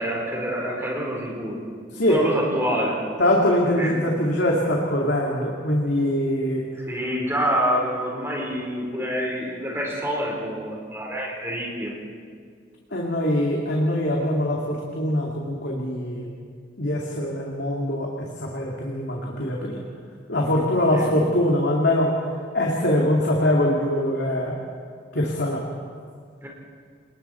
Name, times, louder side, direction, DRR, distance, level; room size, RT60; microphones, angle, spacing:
voice 1, 0.0-1.6 2.1-3.0 3.8-3.9 6.9-11.9 20.9-21.1 26.4-26.5, equal, 15° right, -2 dB, 4.4 m, -26 dB
voice 2, 3.2-6.6 12.9-16.3 16.8-19.8 20.3-22.1 22.5-24.6 25.1-25.6, left 1 dB, 65° left, -2 dB, 2.5 m, -23 dB
29.0 x 20.5 x 4.6 m, 2.1 s
head